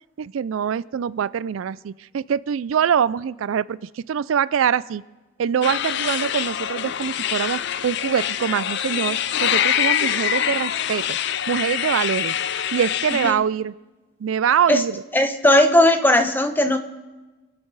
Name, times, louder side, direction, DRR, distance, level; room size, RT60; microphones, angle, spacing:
voice 1, 0.2-3.8 4.1-5.0 5.4-11.2 11.5-12.3 12.7-13.7 14.2-14.9, right 8 dB, 90° right, 19 dB, 0.4 m, -24 dB
sound 1, 5.6-13.3, left 10 dB, 60° left, 0.5 m, -24 dB
voice 2, 15.1-16.8, left 1 dB, 10° left, 8 dB, 0.9 m, -17 dB
26.5 x 8.8 x 4.0 m, 1.2 s
head